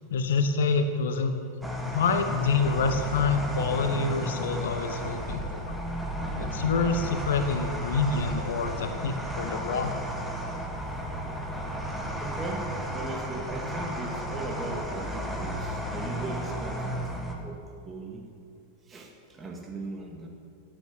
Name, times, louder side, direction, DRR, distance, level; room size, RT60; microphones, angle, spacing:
voice 1, 0.1-1.3 1.9-5.7 6.4-9.9, left 4 dB, 60° left, 8 dB, 1.3 m, -27 dB
sound 1, 1.6-17.3, equal, ahead, 2.1 m, -33 dB
voice 2, 12.2-17.1 17.4-17.6 17.8-18.2 18.9-20.3, right 2 dB, 20° right, 1 dB, 2.1 m, -38 dB
16.0 x 8.9 x 9.7 m, 2.5 s
figure-of-eight pair, 90°, 0 cm